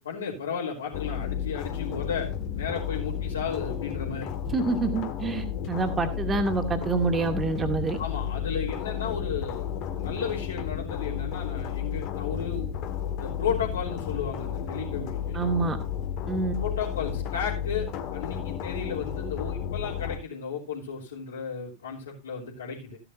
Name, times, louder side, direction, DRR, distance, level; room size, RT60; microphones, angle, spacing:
voice 1, 0.0-4.3 8.0-12.7 13.2-15.4 16.2-23.0, left 6 dB, 65° left, -5 dB, 3.7 m, -34 dB
sound 1, 0.9-20.2, left 9 dB, 40° left, 1.9 m, -32 dB
voice 2, 4.5-8.0 15.3-15.8 16.3-16.5, right 4 dB, 20° right, 6 dB, 2.3 m, -27 dB
15.5 x 11.0 x 2.8 m, 0.27 s
figure-of-eight pair, 90°, 0 cm